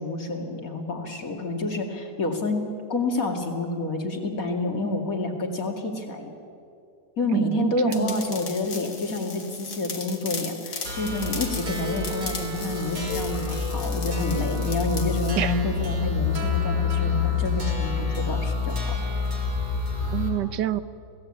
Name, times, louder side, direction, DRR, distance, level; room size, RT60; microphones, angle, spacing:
voice 1, 0.0-6.3 7.2-19.0, left 2 dB, 55° left, 3 dB, 2.8 m, -28 dB
voice 2, 7.3-8.2 15.4-15.5 20.1-20.8, right 14 dB, 90° right, 14 dB, 1.5 m, -27 dB
sound 1, 7.9-15.3, left 4 dB, 70° left, 2.7 m, -37 dB
sound 2, 10.8-20.3, left 4 dB, 70° right, 4.3 m, -27 dB
26.0 x 17.5 x 8.8 m, 2.6 s
omnidirectional pair, 1.8 m